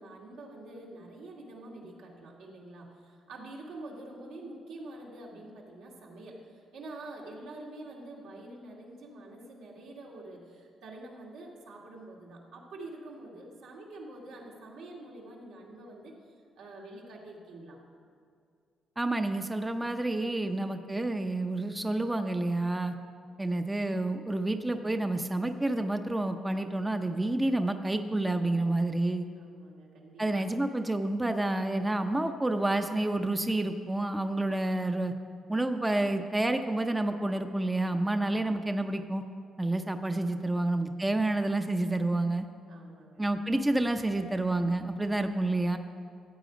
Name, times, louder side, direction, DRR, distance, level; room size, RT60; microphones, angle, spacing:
voice 1, 0.0-16.2 16.6-17.8 29.3-30.5 40.2-40.4 42.7-43.3, right 2 dB, 90° right, -3 dB, 2.2 m, -46 dB
voice 2, 19.0-22.9 23.4-29.3 30.2-35.1 35.5-39.2 39.6-42.5 43.2-45.8, right 2 dB, 15° right, 7 dB, 0.6 m, -29 dB
14.0 x 8.3 x 5.1 m, 2.2 s
cardioid pair, 90°, 0 cm